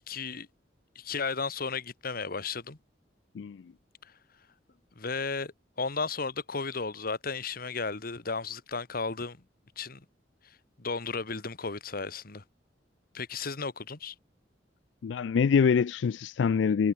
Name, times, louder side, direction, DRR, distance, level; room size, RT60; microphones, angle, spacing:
voice 1, 0.1-0.5 0.9-2.8 4.9-5.5 5.8-9.4 9.8-10.0 10.8-12.4 13.1-14.1, left 4 dB, 55° left, 1.6 m, -34 dB
voice 2, 15.0-16.9, left 6 dB, 85° left, 0.4 m, -25 dB
head